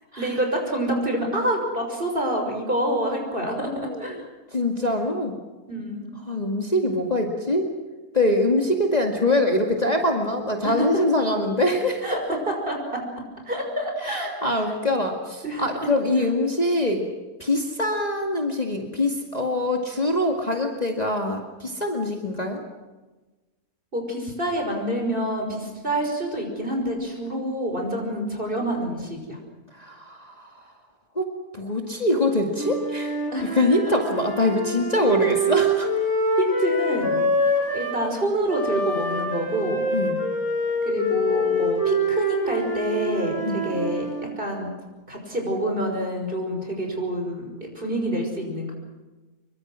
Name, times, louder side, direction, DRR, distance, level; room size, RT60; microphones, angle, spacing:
voice 1, 0.2-3.7 4.0-4.2 5.7-6.0 10.6-11.0 12.0-13.0 13.5-14.6 15.4-15.7 23.9-29.4 33.3-33.6 36.4-39.8 40.9-44.1 44.4-44.7 45.1-48.7, right 1 dB, 35° right, 2 dB, 6.1 m, -27 dB
voice 2, 3.5-4.1 4.5-5.4 6.3-7.7 8.1-12.0 14.0-17.1 17.4-22.6 29.8-30.5 31.2-33.2 33.5-35.9 39.9-40.2 43.4-43.6, left 1 dB, 25° left, 2 dB, 2.3 m, -24 dB
Wind instrument woodwind instrument, 32.5-38.0 38.5-44.3, equal, 15° right, 7.2 m, -25 dB
26.0 x 23.5 x 6.3 m, 1.2 s
omnidirectional pair, 1.6 m